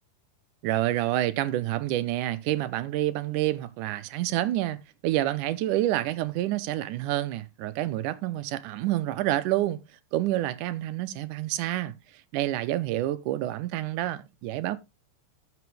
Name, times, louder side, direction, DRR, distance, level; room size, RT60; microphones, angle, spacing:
voice 1, 0.6-9.8 10.1-11.9 12.3-14.8, right 14 dB, 75° right, 2.2 m, -28 dB
14.0 x 6.1 x 3.3 m
omnidirectional pair, 3.8 m